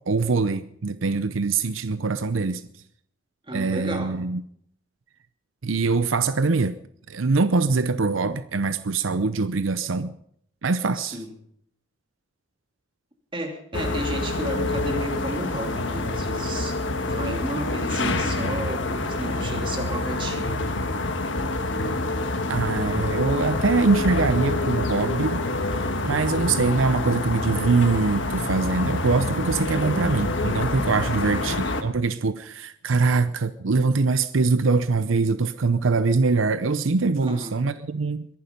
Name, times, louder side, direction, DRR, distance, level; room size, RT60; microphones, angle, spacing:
voice 1, 0.1-2.6 3.5-4.4 5.6-6.8 7.1-10.1 10.6-11.2 22.5-25.4 25.8-38.3, right 4 dB, 80° right, 0.7 m, -23 dB
voice 2, 3.5-4.2 10.9-11.3 13.3-20.8 31.0-31.4 37.2-37.6, right 1 dB, 25° right, 2.8 m, -33 dB
sound 1, 13.7-31.8, left 2 dB, 65° left, 1.6 m, -27 dB
22.0 x 11.5 x 5.3 m
head